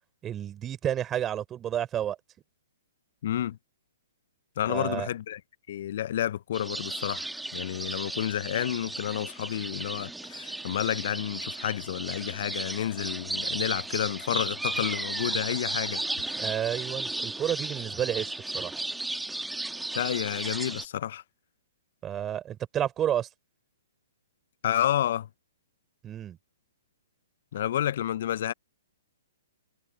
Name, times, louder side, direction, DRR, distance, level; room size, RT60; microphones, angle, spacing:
voice 1, 0.2-2.2 4.7-5.1 16.3-18.8 22.0-23.3 26.0-26.4, right 10 dB, 20° right, 4.0 m, -31 dB
voice 2, 3.2-3.6 4.6-5.4 5.7-16.0 19.9-21.2 24.6-25.3 27.5-28.5, left 11 dB, 55° left, 0.6 m, -30 dB
sound 1, 6.5-20.9, right 2 dB, 5° right, 1.6 m, -35 dB
figure-of-eight pair, 125°, 0 cm